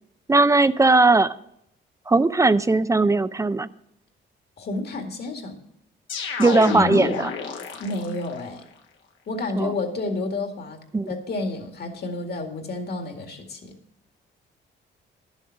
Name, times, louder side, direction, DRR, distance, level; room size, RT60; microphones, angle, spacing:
voice 1, 0.3-1.3 2.1-3.7 6.4-7.3 9.6-9.7 10.9-11.1, right 3 dB, 15° right, 15 dB, 0.4 m, -18 dB
voice 2, 4.6-5.6 7.8-8.6 9.3-10.8 11.1-13.7, left 2 dB, 55° left, 4 dB, 2.1 m, -30 dB
sound 1, 6.1-8.3, left 4 dB, 75° left, 1.7 m, -28 dB
11.5 x 7.3 x 5.8 m, 0.74 s
cardioid pair, 90°, 20 cm